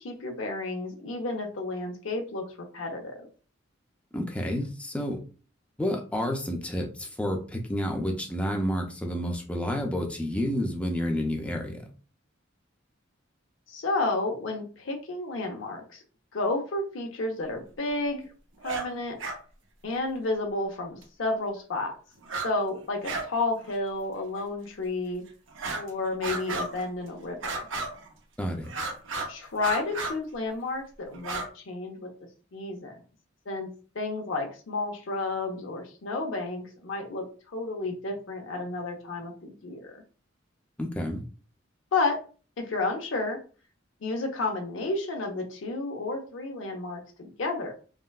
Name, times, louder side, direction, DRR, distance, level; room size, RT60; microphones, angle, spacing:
voice 1, 0.0-2.5 2.7-3.3 13.7-16.0 16.3-18.3 18.6-19.2 19.8-22.0 22.4-25.2 25.7-27.6 29.3-32.1 32.5-33.0 33.5-33.7 33.9-37.3 37.5-40.0 41.9-42.2 42.6-43.4 44.0-47.7, left 2 dB, 80° left, 2 dB, 0.6 m, -31 dB
voice 2, 4.1-5.2 5.8-11.8 28.4-28.7 40.8-41.2, equal, 5° left, 1 dB, 0.5 m, -30 dB
sound 1, 18.6-18.9 19.2-19.4 21.0-21.1 22.2-22.5 22.8-23.3 23.6-23.7 24.4-24.5 25.5-25.9 26.2-26.9 27.4-28.1 28.6-29.3 29.6-30.2 31.1-31.5, right 3 dB, 80° right, 0.6 m, -33 dB
3.6 x 2.1 x 2.3 m, 0.37 s
head